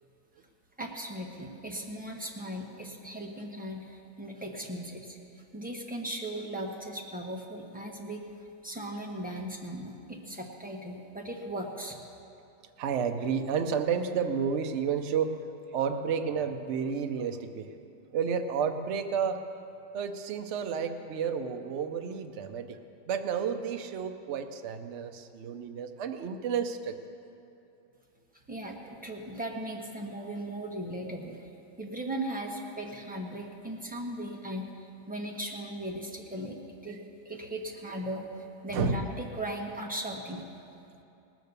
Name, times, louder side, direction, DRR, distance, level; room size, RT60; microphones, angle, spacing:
voice 1, 0.8-8.3 8.6-12.0 28.5-31.5 31.8-40.5, right 1 dB, 5° right, 0 dB, 0.8 m, -38 dB
voice 2, 12.8-17.8 18.1-22.8 23.1-27.0 38.7-39.0, right 6 dB, 75° right, 6 dB, 0.6 m, -31 dB
19.0 x 7.7 x 6.7 m, 2.6 s
omnidirectional pair, 2.2 m